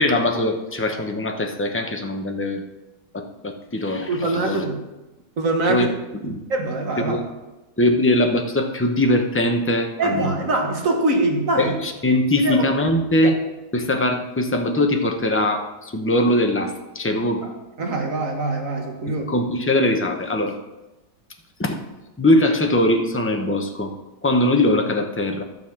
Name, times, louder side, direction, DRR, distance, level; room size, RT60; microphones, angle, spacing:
voice 1, 0.0-2.6 3.1-4.6 5.7-5.9 6.2-6.4 7.0-7.2 7.8-10.4 11.6-13.3 13.7-17.4 19.3-20.6 21.6-21.8 22.2-23.9 24.2-25.4, left 1 dB, 15° left, 4 dB, 0.4 m, -21 dB
voice 2, 4.1-4.8 5.4-5.9 6.5-7.2 10.0-11.7 12.4-12.7 13.2-13.3 17.4-17.5 17.8-19.2, right 2 dB, 50° right, 2 dB, 1.7 m, -23 dB
13.5 x 4.7 x 7.3 m, 1.0 s
omnidirectional pair, 1.9 m